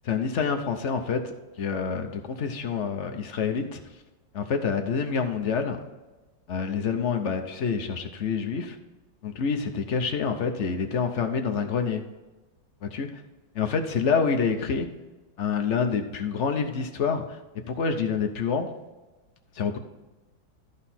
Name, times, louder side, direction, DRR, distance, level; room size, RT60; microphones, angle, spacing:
voice 1, 0.1-1.3 1.6-3.8 4.3-5.8 6.5-8.8 9.2-12.0 12.8-13.2 13.5-14.9 15.4-17.4 17.7-18.7 19.6-19.8, left 5 dB, 70° left, 6 dB, 0.7 m, -27 dB
13.5 x 5.0 x 4.2 m, 1.2 s
omnidirectional pair, 2.2 m